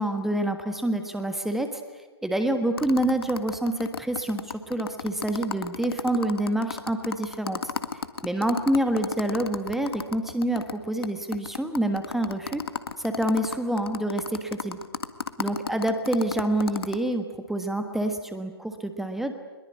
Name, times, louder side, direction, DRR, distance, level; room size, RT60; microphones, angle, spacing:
voice 1, 0.0-1.8 2.2-7.6 8.2-12.6 13.0-14.8 15.4-19.3, right 1 dB, ahead, 6 dB, 1.5 m, -27 dB
sound 1, 2.8-10.7 11.0-11.1 11.3-17.0, left 6 dB, 65° left, 1.7 m, -33 dB
23.5 x 22.0 x 9.8 m, 1.3 s
figure-of-eight pair, 125°, 13 cm